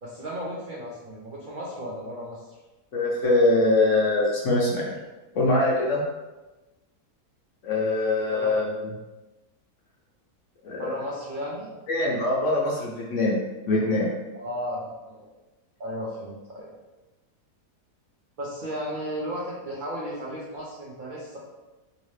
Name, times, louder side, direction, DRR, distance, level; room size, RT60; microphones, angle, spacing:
voice 1, 0.0-2.6 8.3-8.5 10.8-11.7 14.3-15.3 15.8-16.7 18.4-21.4, equal, 80° right, -6 dB, 0.4 m, -34 dB
voice 2, 2.9-4.8 5.3-6.0 7.6-8.7 10.6-10.9 11.9-13.4 13.7-14.1, left 2 dB, 65° left, -3 dB, 0.8 m, -23 dB
2.9 x 2.8 x 3.1 m, 1.1 s
omnidirectional pair, 1.7 m